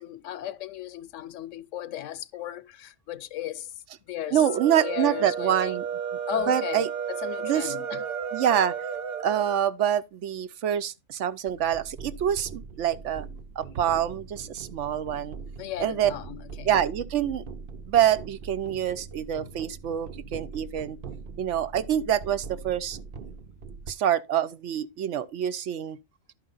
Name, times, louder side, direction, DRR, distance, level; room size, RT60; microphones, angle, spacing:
voice 1, 0.0-3.7 4.1-4.4 4.8-5.8 6.3-8.0 15.6-16.7, left 11 dB, 80° left, 1.0 m, -36 dB
sound 1, 4.3-9.6, right 7 dB, 15° right, 1.0 m, -32 dB
voice 2, 4.3-5.9 6.5-6.9 7.4-7.7 8.3-8.7 9.2-13.3 13.6-15.4 15.8-16.1 16.7-17.4 17.9-21.0 21.4-23.0 23.9-26.0, right 10 dB, 75° right, 1.0 m, -26 dB
sound 2, 11.5-23.9, right 5 dB, 50° right, 0.8 m, -42 dB
11.5 x 5.0 x 3.8 m
omnidirectional pair, 1.3 m